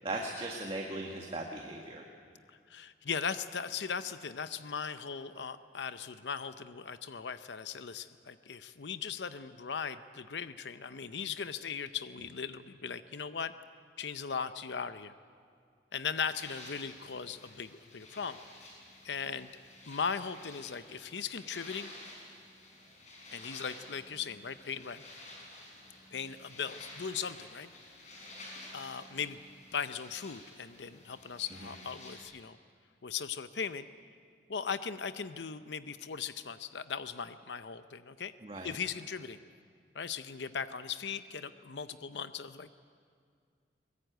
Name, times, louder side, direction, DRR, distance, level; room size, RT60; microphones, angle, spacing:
voice 1, 0.0-2.0 31.6-31.7 38.4-38.8, right 2 dB, 30° right, 0 dB, 1.9 m, -38 dB
voice 2, 2.7-13.5 14.0-15.1 15.9-18.4 19.0-19.5 19.9-21.9 23.3-25.0 26.1-27.7 28.7-29.4 29.7-32.6 33.0-33.9 34.5-38.3 38.6-39.4 39.9-42.7, left 6 dB, 80° left, 12 dB, 0.7 m, -38 dB
sound 1, 16.3-32.2, left 2 dB, 40° left, 6.4 m, -51 dB
22.5 x 20.0 x 9.2 m, 2.2 s
head